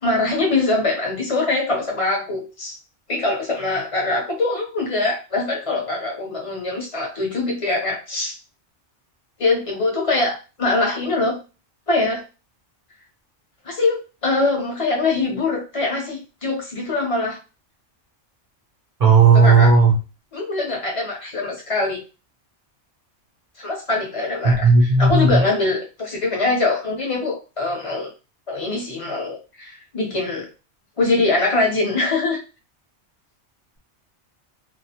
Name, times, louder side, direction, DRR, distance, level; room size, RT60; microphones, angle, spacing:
voice 1, 0.0-2.8 3.1-8.4 9.4-11.4 11.9-12.2 13.6-17.4 19.3-19.7 20.3-22.0 23.6-28.1 28.5-30.5 31.0-32.4, left 3 dB, 35° left, 0 dB, 0.6 m, -23 dB
voice 2, 19.0-19.9 24.4-25.4, right 4 dB, 55° right, -1 dB, 0.4 m, -13 dB
2.4 x 2.0 x 2.7 m, 0.30 s
omnidirectional pair, 1.2 m